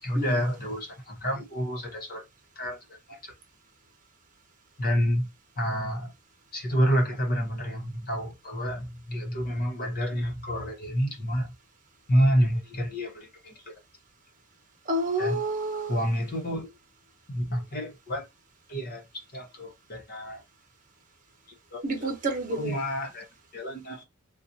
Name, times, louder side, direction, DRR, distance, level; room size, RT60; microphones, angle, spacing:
voice 1, 0.0-2.2 2.6-2.8 3.1-3.3 4.8-5.3 5.6-6.1 6.5-11.5 12.1-13.7 15.2-15.4 15.9-16.7 17.3-18.3 18.7-19.0 19.3-20.4 21.7-22.1 22.5-23.2 23.5-24.0, equal, 45° left, 1.0 m, -28 dB
voice 2, 14.9-16.0 21.8-22.8, right 1 dB, 40° right, 1.0 m, -29 dB
4.0 x 2.4 x 2.6 m
head